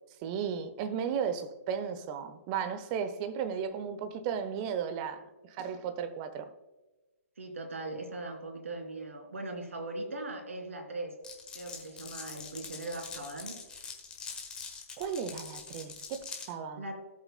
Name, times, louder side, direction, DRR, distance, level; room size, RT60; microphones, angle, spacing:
voice 1, 0.2-6.5 15.0-16.8, right 7 dB, 30° right, 0.9 m, -35 dB
voice 2, 7.4-11.1 11.5-13.6 16.8-17.1, right 2 dB, 60° right, 2.9 m, -40 dB
Glass, 11.2-16.5, left 5 dB, 10° left, 1.4 m, -44 dB
17.5 x 8.0 x 2.2 m
figure-of-eight pair, 125°, 8 cm